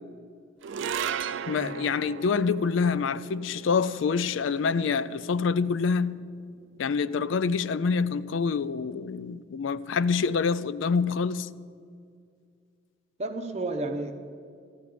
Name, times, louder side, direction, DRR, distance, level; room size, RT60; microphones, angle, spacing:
sound 1, 0.6-7.1, right 7 dB, 65° right, 0.4 m, -37 dB
voice 1, 1.5-6.2 6.8-11.5, left 5 dB, 75° left, 0.4 m, -26 dB
voice 2, 13.2-14.1, right 2 dB, 35° right, 0.7 m, -32 dB
14.0 x 12.0 x 5.1 m
head